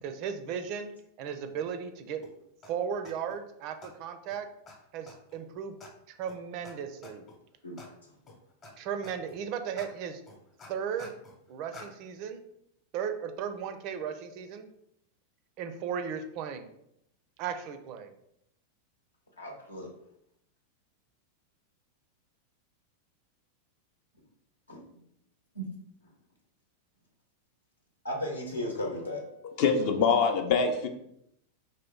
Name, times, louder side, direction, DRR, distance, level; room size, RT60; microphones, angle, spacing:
voice 1, 0.0-0.9 1.2-2.2 2.7-4.5 4.9-5.7 6.2-7.3 8.8-10.2 10.7-11.1 11.5-12.4 12.9-14.7 15.6-16.7 17.4-18.1, right 7 dB, 40° right, 8 dB, 0.4 m, -36 dB
sound 1, 2.2-2.3 2.6-2.7 3.0-3.4 3.8-3.9 4.3-4.4 4.7-4.8 5.1-5.4 5.8-5.9 6.3-6.4 6.6-6.7 7.0-7.4 7.8-7.9 8.3-8.7 9.0-9.4 9.8-9.9 10.3-11.4 11.7-11.9, left 2 dB, 30° left, 0.9 m, -48 dB
voice 2, 19.4-19.9 24.7-24.8 25.5-25.6 28.0-29.3, left 1 dB, 75° left, -1 dB, 0.9 m, -35 dB
voice 3, 29.6-30.9, left 5 dB, 45° left, 5 dB, 0.5 m, -24 dB
3.1 x 2.8 x 3.7 m, 0.76 s
figure-of-eight pair, 90°, 0 cm